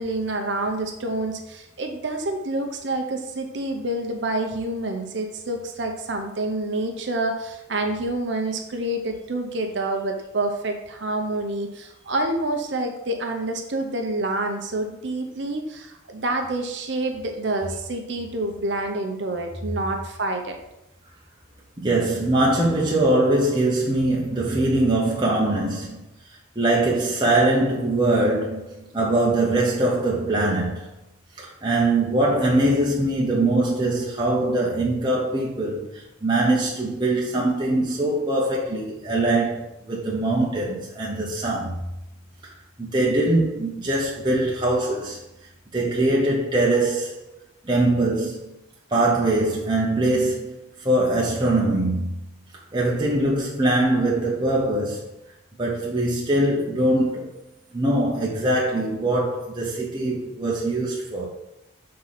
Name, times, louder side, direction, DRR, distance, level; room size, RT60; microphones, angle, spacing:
voice 1, 0.0-20.6, right 2 dB, 60° right, 0.7 m, -27 dB
voice 2, 21.8-26.0 26.6-30.9 31.4-41.8 42.8-45.2 45.7-47.4 47.6-48.5 48.9-52.2 52.7-55.1 55.6-57.3 57.7-61.3, right 2 dB, 20° right, 0.9 m, -22 dB
5.7 x 3.8 x 5.7 m
head